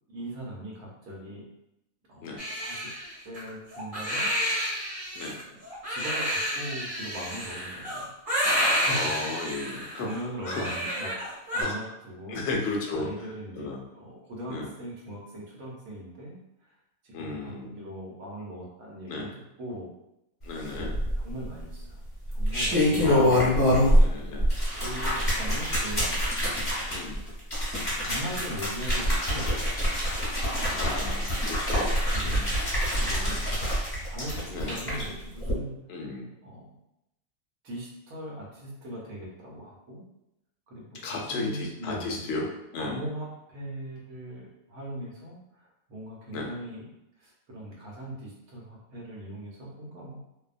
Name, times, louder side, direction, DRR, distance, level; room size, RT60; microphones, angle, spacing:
voice 1, 0.1-1.5 2.1-2.3 2.6-2.9 3.2-4.3 5.5-5.6 5.9-8.1 8.7-9.3 9.7-11.1 11.5-12.5 12.9-16.7 17.0-19.3 19.6-19.9 21.2-22.0 22.3-23.4 24.8-26.2 26.8-27.0 27.9-29.8 32.1-32.4 32.9-35.8 36.4-36.8 37.6-40.0 40.7-42.3 42.8-50.2, right 1 dB, 75° right, -3 dB, 1.2 m, -40 dB
Crying sobbing, 2.4-11.6, equal, 40° right, 1.1 m, -30 dB
voice 2, 8.9-10.1 10.5-10.7 11.6-11.8 12.3-13.1 13.6-13.8 14.5-14.7 17.1-17.7 19.1-19.3 20.4-20.9 23.0-23.5 24.0-24.5 26.9-27.2 30.7-32.0 32.2-32.5 33.0-33.7 34.5-34.8 35.9-36.3 41.0-42.5 42.7-43.0 46.3-46.5, left 3 dB, 65° left, 0 dB, 0.7 m, -34 dB
sound 1, 20.8-21.4 22.3-24.1 24.4-35.0 35.4-35.5, equal, 25° left, 1.2 m, -25 dB
2.7 x 2.2 x 2.4 m, 0.86 s
omnidirectional pair, 1.5 m